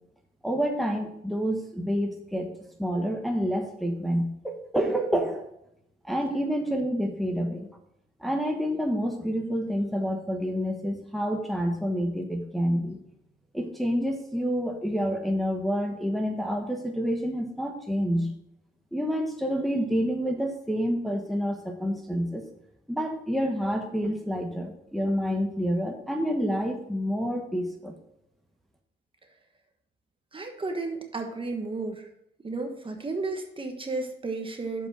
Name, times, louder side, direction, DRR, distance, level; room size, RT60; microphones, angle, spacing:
voice 1, 0.4-5.4 6.0-7.7 8.2-13.0 13.5-18.3 18.9-22.4 22.9-27.9, equal, ahead, 2 dB, 1.2 m, -28 dB
voice 2, 30.3-32.1 32.4-34.9, right 3 dB, 25° right, 4 dB, 1.4 m, -33 dB
7.6 x 5.5 x 6.1 m, 0.76 s
cardioid pair, 90°, 20 cm